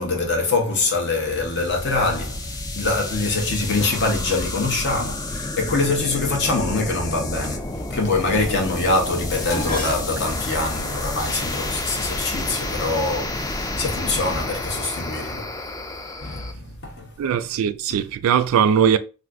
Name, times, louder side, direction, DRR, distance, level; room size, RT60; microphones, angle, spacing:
voice 1, 0.0-17.2, left 3 dB, 55° left, 0.9 m, -24 dB
sound 1, 1.2-16.5, left 2 dB, 15° left, 0.3 m, -30 dB
Dishes pots and pans, 9.3-13.7 14.6-15.0 15.3-16.2 16.4-16.5, equal, 85° left, 1.3 m, -35 dB
voice 2, 17.2-19.0, right 8 dB, 75° right, 0.3 m, -19 dB
2.5 x 2.5 x 3.5 m
head